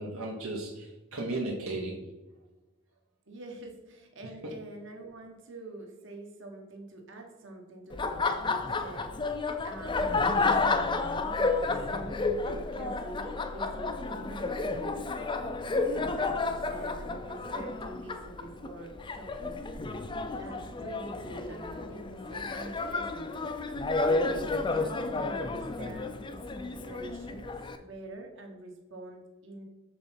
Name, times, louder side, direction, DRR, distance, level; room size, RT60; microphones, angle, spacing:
voice 1, 0.0-2.0, right 2 dB, 75° right, -2 dB, 1.0 m, -35 dB
voice 2, 3.3-15.1 15.6-19.6 20.3-23.4 23.7-23.8 24.0-29.6, right 2 dB, 60° right, 1 dB, 1.3 m, -45 dB
Laughter, 7.9-27.8, left 3 dB, 20° left, 0.4 m, -31 dB
6.6 x 4.0 x 5.8 m, 1.1 s
head